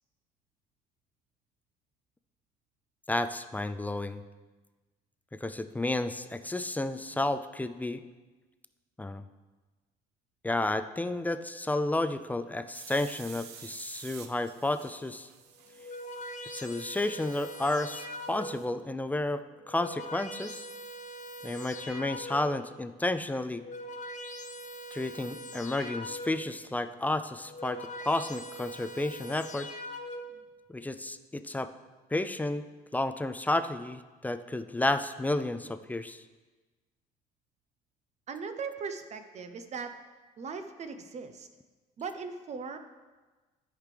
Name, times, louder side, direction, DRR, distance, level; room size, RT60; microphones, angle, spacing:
voice 1, 3.1-4.2 5.4-8.0 9.0-9.2 10.4-15.3 16.5-20.7 21.4-23.6 24.9-29.7 30.7-31.7 32.1-32.7 32.9-36.2, left 2 dB, 10° left, 10 dB, 0.3 m, -31 dB
sound 1, 12.7-18.6, right 8 dB, 90° right, 0.7 m, -51 dB
sound 2, 15.6-18.8 19.5-22.7 23.4-26.6 27.3-30.5, equal, 45° left, 0.9 m, -42 dB
voice 2, 38.3-40.0 40.4-41.5 42.0-42.8, right 5 dB, 40° right, 8 dB, 0.8 m, -39 dB
13.5 x 5.1 x 3.3 m, 1.3 s
cardioid pair, 110°, 17 cm